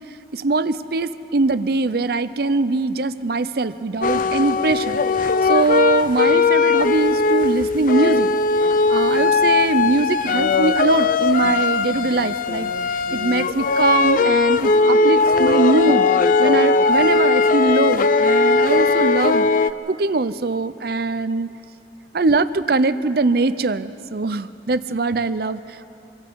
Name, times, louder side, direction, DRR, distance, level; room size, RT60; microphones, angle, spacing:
voice 1, 0.3-8.3 8.9-12.7 13.1-16.1 16.4-19.5 19.9-21.5 22.1-25.6, right 3 dB, 60° right, 14 dB, 0.6 m, -21 dB
sound 1, 4.0-19.7, left 4 dB, 50° left, 0.5 m, -18 dB
26.5 x 23.0 x 4.7 m, 2.9 s
head